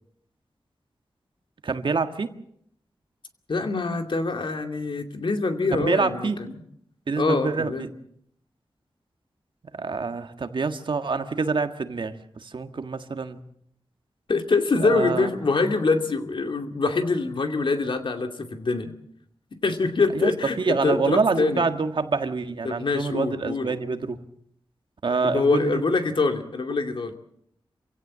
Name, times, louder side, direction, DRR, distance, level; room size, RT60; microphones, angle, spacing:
voice 1, 1.6-2.3 5.7-6.4 7.1-7.9 9.8-12.2 12.4-13.4 14.8-15.3 20.1-20.3 20.6-24.2 25.0-25.8, right 4 dB, 60° right, 8 dB, 1.6 m, -26 dB
voice 2, 3.5-6.5 7.2-7.9 14.3-18.9 19.6-21.6 22.6-23.7 25.2-27.1, left 3 dB, 65° left, 5 dB, 2.5 m, -24 dB
27.0 x 16.5 x 7.5 m, 0.71 s
wide cardioid pair, 110°, 9 cm